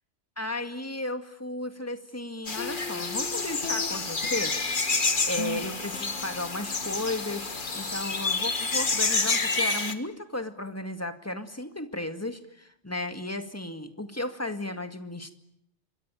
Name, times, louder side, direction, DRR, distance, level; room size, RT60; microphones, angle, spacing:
voice 1, 0.4-4.6 5.0-7.5 7.7-15.3, left 1 dB, 10° left, 8 dB, 2.1 m, -34 dB
sound 1, 2.5-9.9, left 3 dB, 40° left, 1.9 m, -29 dB
sound 2, 2.6-9.3, left 4 dB, 75° left, 1.8 m, -41 dB
26.0 x 23.5 x 9.2 m, 0.74 s
omnidirectional pair, 1.3 m